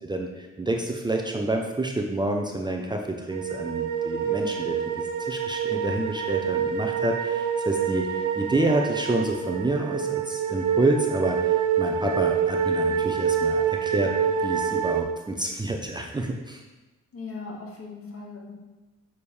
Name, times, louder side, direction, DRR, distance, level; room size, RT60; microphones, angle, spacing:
voice 1, 0.0-14.1 14.4-16.6, right 2 dB, 15° right, 2 dB, 0.8 m, -28 dB
sound 1, 3.3-15.0, right 7 dB, 90° right, 0.9 m, -26 dB
voice 2, 17.1-18.5, left 4 dB, 50° left, -1 dB, 2.0 m, -38 dB
7.1 x 6.7 x 3.3 m, 1.1 s
cardioid pair, 90°, 30 cm